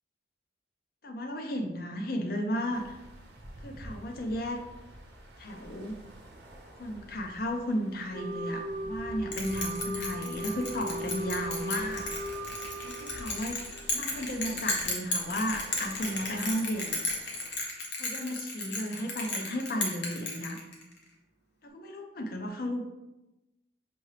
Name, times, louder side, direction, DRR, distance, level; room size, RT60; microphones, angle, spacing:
voice 1, 1.0-3.0 3.6-4.6 5.4-6.0 6.8-12.1 12.8-13.6 13.9-17.0 18.0-20.6 21.6-22.8, equal, 55° left, 3 dB, 0.5 m, -34 dB
sound 1, 2.7-17.6, right 1 dB, 70° right, 0.8 m, -48 dB
Wind instrument woodwind instrument, 8.1-13.8, right 1 dB, 40° right, 0.6 m, -38 dB
Bell, 9.3-21.0, left 2 dB, 75° left, 0.9 m, -34 dB
6.0 x 2.7 x 3.2 m, 1.0 s
head